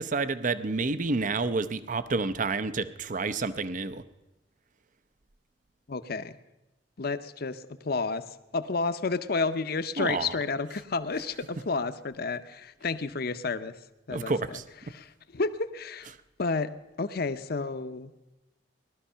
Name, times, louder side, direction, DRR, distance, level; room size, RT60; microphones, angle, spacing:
voice 1, 0.0-4.0 10.0-10.4 14.1-14.6, right 3 dB, 45° right, 13 dB, 0.6 m, -29 dB
voice 2, 5.9-6.4 7.0-13.7 14.1-14.6 14.9-16.1 16.4-18.1, left 4 dB, 55° left, 11 dB, 0.7 m, -31 dB
18.5 x 12.5 x 5.6 m, 0.99 s
head